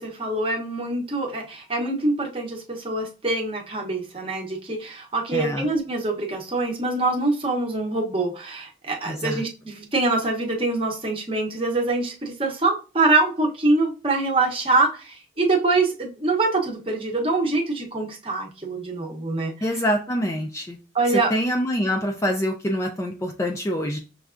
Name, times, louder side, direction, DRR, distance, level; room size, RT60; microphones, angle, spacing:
voice 1, 0.0-19.8 20.9-21.3, right 2 dB, 30° right, 0 dB, 0.7 m, -24 dB
voice 2, 5.3-5.7 9.1-9.4 19.6-20.8 21.1-24.0, equal, 15° left, 2 dB, 0.3 m, -25 dB
6.2 x 2.3 x 2.4 m, 0.33 s
head